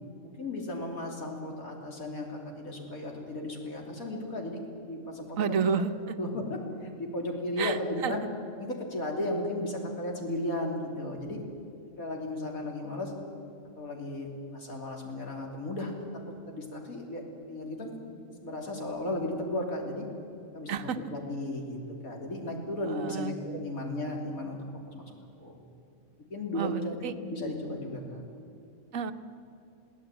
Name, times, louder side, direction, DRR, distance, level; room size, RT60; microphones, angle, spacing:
voice 1, 0.2-5.4 5.6-5.7 6.2-8.2 8.5-11.4 12.0-13.1 13.8-15.9 16.5-20.1 20.5-20.8 21.1-24.6 24.9-25.0 25.4-25.6 26.3-28.2, left 1 dB, 85° left, 1 dB, 3.6 m, -35 dB
voice 2, 5.4-5.9 7.6-8.1 20.7-21.0 22.8-23.4 26.5-27.1 28.9-29.1, right 6 dB, 70° right, 10 dB, 1.3 m, -30 dB
22.5 x 16.0 x 9.1 m, 2.6 s
omnidirectional pair, 1.4 m